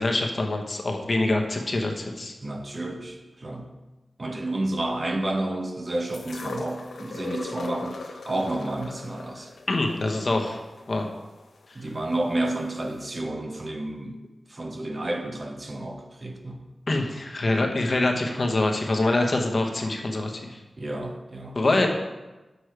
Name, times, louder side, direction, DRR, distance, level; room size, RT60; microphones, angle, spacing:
voice 1, 0.0-2.3 9.7-10.6 10.9-11.1 16.9-20.6 21.6-21.9, left 2 dB, 50° left, 2 dB, 1.0 m, -25 dB
voice 2, 2.4-3.7 4.2-9.5 11.7-14.1 14.5-16.6 20.8-21.9, right 1 dB, 40° right, 4 dB, 0.9 m, -30 dB
sound 1, 6.1-12.2 13.0-13.1, left 3 dB, 85° left, 0.7 m, -39 dB
6.6 x 6.3 x 4.6 m, 1.1 s
cardioid pair, 65°, 0 cm